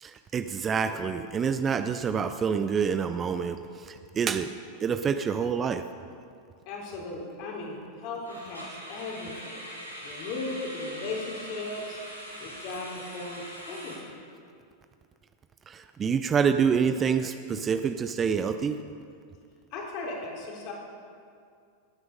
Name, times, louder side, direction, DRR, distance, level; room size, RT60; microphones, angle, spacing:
voice 1, 0.0-4.5 4.8-5.8 15.7-18.8, right 6 dB, 25° right, 10 dB, 0.5 m, -27 dB
voice 2, 6.7-9.6 10.0-12.0 12.4-13.9 19.7-20.7, left 3 dB, 45° left, -2 dB, 3.6 m, -37 dB
sound 1, 8.2-14.0, equal, 90° right, 3.0 m, -42 dB
19.0 x 9.4 x 5.3 m, 2.4 s
figure-of-eight pair, 90°, 0 cm